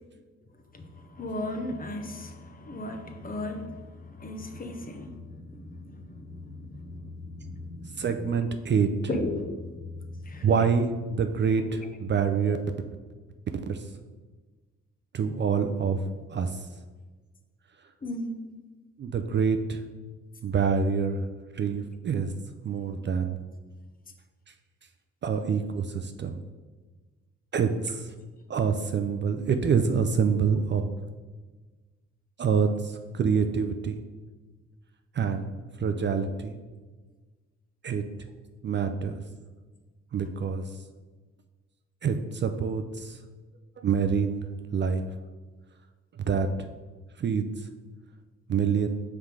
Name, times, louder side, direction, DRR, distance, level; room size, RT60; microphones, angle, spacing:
voice 1, 0.7-8.3 9.1-10.6 11.6-11.8 12.5-12.6 18.0-18.5, left 1 dB, 30° left, 5 dB, 0.8 m, -36 dB
voice 2, 8.0-8.9 10.4-12.6 13.7-13.8 15.1-16.0 16.3-16.5 19.0-19.8 20.4-21.2 21.6-22.3 22.6-23.4 25.2-26.4 27.5-28.0 28.5-30.9 32.4-32.7 33.1-34.0 35.2-35.5 35.8-36.6 37.8-38.0 38.6-39.2 40.1-40.6 42.0-43.1 43.8-44.4 44.7-45.0 46.3-46.5 47.2-47.4 48.5-48.9, right 6 dB, 40° right, 7 dB, 0.4 m, -26 dB
5.5 x 3.7 x 4.7 m, 1.3 s
cardioid pair, 90°, 30 cm